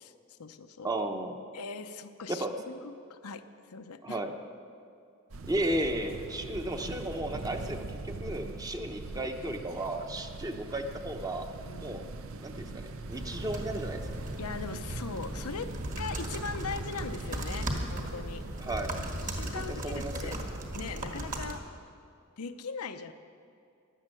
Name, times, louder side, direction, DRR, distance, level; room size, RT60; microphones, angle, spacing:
voice 1, 0.0-0.9 1.5-4.2 11.7-12.0 14.4-18.4 19.1-20.4 20.7-21.6 22.4-23.1, left 5 dB, 90° left, 8 dB, 0.8 m, -40 dB
voice 2, 0.8-1.4 2.3-2.5 4.0-4.3 5.5-11.5 11.8-12.0 12.4-14.0 18.6-18.9 19.5-20.3, right 1 dB, 15° right, 5 dB, 0.9 m, -34 dB
sound 1, 5.3-21.6, right 3 dB, 65° right, 0.7 m, -42 dB
sound 2, 13.1-21.5, right 1 dB, 35° right, 1.6 m, -37 dB
15.5 x 11.0 x 7.7 m, 2.5 s
head